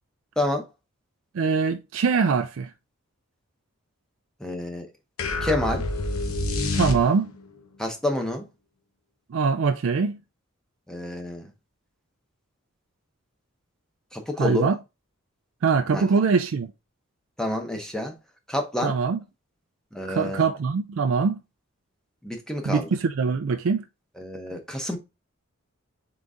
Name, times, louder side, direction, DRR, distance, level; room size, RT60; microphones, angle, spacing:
voice 1, 1.3-2.7 6.7-7.3 9.3-10.2 14.4-14.8 15.6-16.7 18.8-19.2 20.1-21.4 22.6-23.8, right 5 dB, 70° right, 0.4 m, -23 dB
voice 2, 4.4-4.9 5.4-5.8 7.8-8.4 10.9-11.5 14.1-14.7 15.9-16.0 17.4-18.1 18.5-18.9 19.9-20.4 22.2-22.9 24.2-25.0, left 1 dB, 5° left, 0.8 m, -28 dB
sound 1, 5.2-7.5, left 2 dB, 85° left, 0.9 m, -27 dB
3.9 x 3.8 x 3.5 m
head